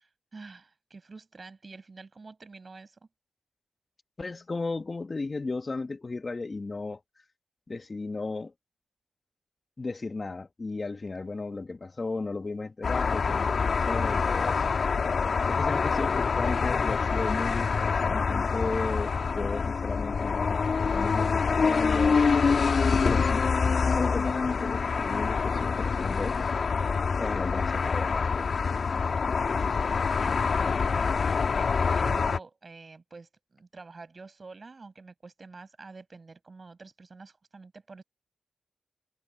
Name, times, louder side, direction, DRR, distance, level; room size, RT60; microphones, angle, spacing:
voice 1, 0.0-3.0 29.4-38.0, right 4 dB, 45° right, 7.0 m, -47 dB
voice 2, 4.2-7.0 7.7-8.5 9.8-14.7 15.5-20.6 20.9-22.2 23.0-23.5 23.8-26.5 27.2-28.5, left 3 dB, 40° left, 1.7 m, -35 dB
sound 1, 12.8-32.4, left 5 dB, 60° left, 2.1 m, -26 dB
cardioid pair, 55°, 0 cm